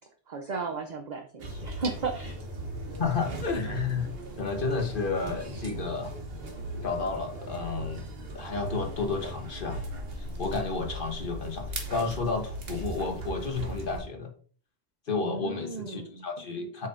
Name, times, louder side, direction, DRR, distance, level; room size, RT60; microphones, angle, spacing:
voice 1, 0.3-2.4 15.2-16.2, right 4 dB, 45° right, 5 dB, 0.7 m, -35 dB
sound 1, 1.4-14.0, right 1 dB, 60° right, 1.4 m, -38 dB
voice 2, 3.0-6.2 6.8-8.1 8.3-9.8 10.2-14.3 15.1-16.9, left 4 dB, 50° left, 4 dB, 1.3 m, -32 dB
7.4 x 5.5 x 2.6 m, 0.43 s
omnidirectional pair, 1.1 m